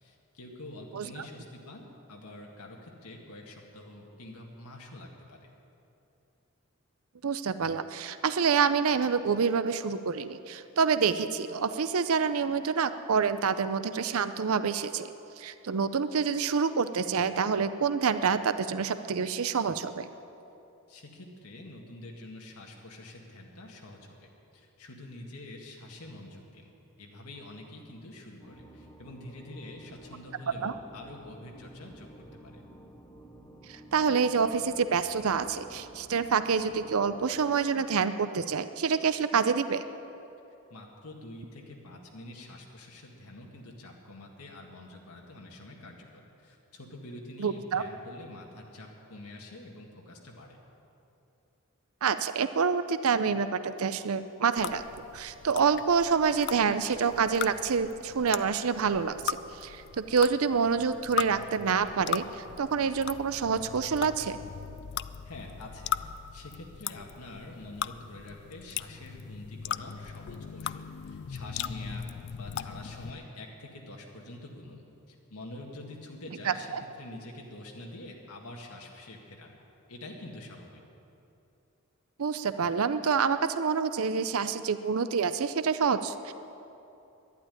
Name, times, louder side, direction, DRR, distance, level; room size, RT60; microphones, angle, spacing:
voice 1, 0.0-5.5 20.9-26.7 27.0-32.1 32.4-32.6 40.7-50.6 65.2-66.0 66.3-72.1 72.3-74.8 75.1-79.6 79.9-80.8, left 1 dB, 90° left, 0 dB, 1.9 m, -46 dB
voice 2, 7.2-15.1 15.4-20.1 30.6-30.7 33.7-39.8 47.4-47.8 52.0-54.8 55.1-64.4 76.5-76.8 82.2-86.3, right 6 dB, 75° right, 12 dB, 0.5 m, -27 dB
sound 1, 28.4-37.5, right 1 dB, 15° left, 1.1 m, -52 dB
sound 2, 54.6-73.1, left 9 dB, 50° left, 0.3 m, -38 dB
11.5 x 11.5 x 9.9 m, 2.8 s
head